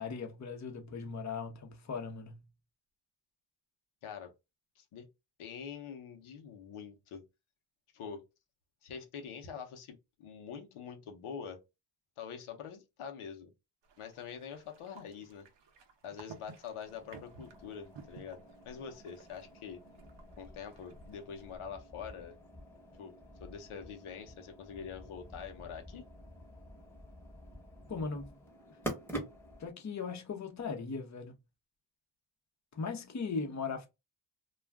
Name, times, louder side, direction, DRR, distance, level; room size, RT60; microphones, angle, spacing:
voice 1, 0.0-2.4 27.9-28.3 29.6-31.3 32.7-33.9, left 5 dB, 35° left, 0.8 m, -38 dB
voice 2, 4.0-4.3 4.8-5.1 5.4-7.2 7.9-8.2 8.8-11.6 12.2-13.5 14.0-15.5 16.0-19.8 20.4-22.3 23.0-23.1 23.4-26.0, left 7 dB, 85° left, 0.8 m, -45 dB
sound 1, 13.8-21.6, right 4 dB, 60° right, 0.8 m, -56 dB
sound 2, 16.8-29.7, right 1 dB, 5° left, 1.1 m, -48 dB
2.4 x 2.3 x 3.4 m
cardioid pair, 75°, 49 cm